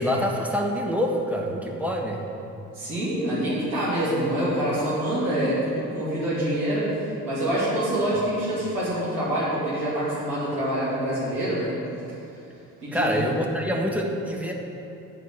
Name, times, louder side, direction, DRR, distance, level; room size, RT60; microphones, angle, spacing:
voice 1, 0.0-2.2 12.9-14.5, equal, 5° right, -1 dB, 1.5 m, -26 dB
voice 2, 2.7-11.8 12.8-13.2, right 1 dB, 80° right, -11 dB, 2.9 m, -26 dB
12.0 x 5.1 x 7.8 m, 2.8 s
figure-of-eight pair, 40°, 45 cm